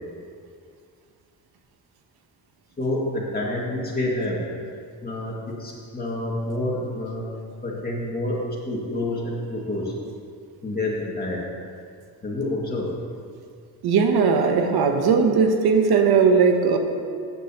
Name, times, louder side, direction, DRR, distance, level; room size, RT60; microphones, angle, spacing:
voice 1, 2.8-4.4 5.0-7.3 7.6-8.4 8.7-9.9 10.6-11.4 12.2-12.9, left 1 dB, 25° left, -4 dB, 2.2 m, -28 dB
voice 2, 13.8-16.8, right 5 dB, 90° right, 4 dB, 1.1 m, -18 dB
15.0 x 9.2 x 3.0 m, 2.2 s
cardioid pair, 125°, 37 cm